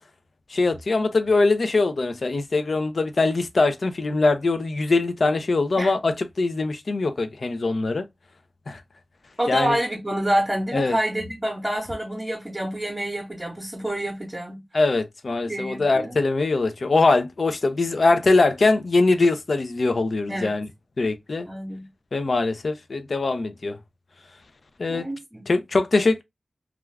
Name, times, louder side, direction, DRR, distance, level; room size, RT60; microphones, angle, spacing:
voice 1, 0.5-8.0 8.7-8.8 9.5-9.8 10.7-11.0 14.7-20.7 21.0-21.5 22.1-23.8 24.8-25.0 25.5-26.2, left 3 dB, 60° left, 0.4 m, -22 dB
voice 2, 9.4-14.6 15.5-16.2 20.3-20.6 21.4-21.8 24.9-25.5, right 1 dB, 15° right, 0.8 m, -27 dB
2.4 x 2.3 x 3.1 m
wide cardioid pair, 105°, 0 cm